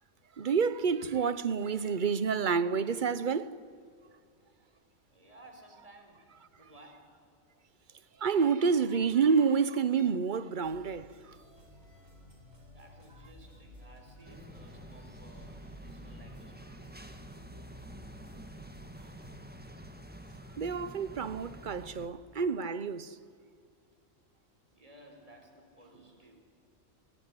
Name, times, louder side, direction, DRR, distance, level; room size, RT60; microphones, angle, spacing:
voice 1, 0.4-3.5 8.2-11.1 20.6-23.2, right 6 dB, 45° right, 0.9 m, -28 dB
voice 2, 5.1-6.2 6.6-7.1 12.7-17.1 24.7-26.4, right 1 dB, 25° right, 4.6 m, -57 dB
sound 1, 10.6-19.3, left 1 dB, 85° right, 5.6 m, -55 dB
sound 2, 14.2-22.1, right 1 dB, 5° right, 1.6 m, -48 dB
28.0 x 21.0 x 9.8 m
omnidirectional pair, 1.3 m